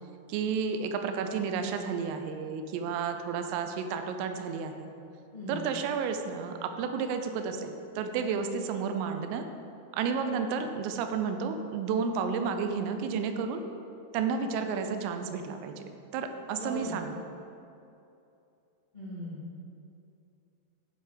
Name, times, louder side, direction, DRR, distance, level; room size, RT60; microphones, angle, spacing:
voice 1, 0.3-4.9 5.5-9.4 9.9-13.6 14.1-15.8 16.1-17.2, right 6 dB, 85° right, 7 dB, 3.3 m, -31 dB
voice 2, 16.5-16.9 18.9-19.4, equal, 65° left, -10 dB, 0.4 m, -38 dB
12.0 x 5.5 x 5.1 m, 2.7 s
omnidirectional pair, 5.8 m